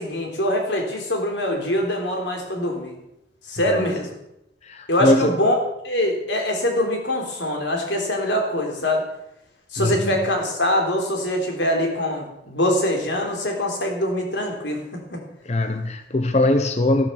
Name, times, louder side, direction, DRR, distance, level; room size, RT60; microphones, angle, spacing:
voice 1, 0.0-3.0 3.5-4.1 4.9-5.5 5.8-9.0 9.7-14.8 15.1-15.2, left 1 dB, 85° left, 2 dB, 3.7 m, -23 dB
voice 2, 4.6-5.4 9.8-10.2 15.4-17.1, left 1 dB, 35° left, 8 dB, 0.8 m, -21 dB
13.0 x 12.5 x 5.9 m, 0.83 s
head